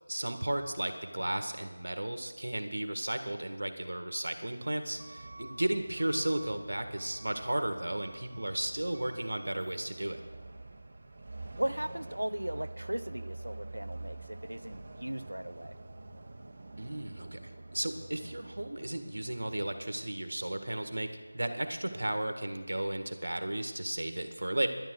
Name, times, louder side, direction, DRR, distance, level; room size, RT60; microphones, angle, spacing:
voice 1, 0.1-10.2 16.8-21.1 21.3-24.7, right 1 dB, 65° right, 7 dB, 1.6 m, -34 dB
Truck / Alarm, 4.9-22.1, right 2 dB, 40° right, 1.1 m, -47 dB
voice 2, 11.6-15.8, right 1 dB, 85° right, 12 dB, 0.7 m, -37 dB
12.0 x 11.0 x 6.4 m, 1.3 s
figure-of-eight pair, 170°, 0 cm